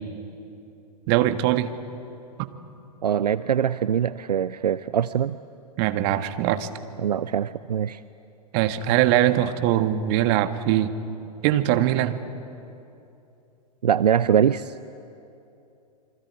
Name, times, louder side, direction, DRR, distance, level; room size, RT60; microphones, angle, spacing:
voice 1, 1.1-1.7 2.4-2.5 5.8-6.7 8.5-10.9 11.4-12.2, right 13 dB, 40° right, 10 dB, 1.5 m, -21 dB
voice 2, 3.0-5.4 7.0-8.0 13.8-14.7, right 9 dB, 70° right, 15 dB, 0.6 m, -23 dB
27.0 x 24.0 x 8.4 m, 2.8 s
figure-of-eight pair, 105°, 21 cm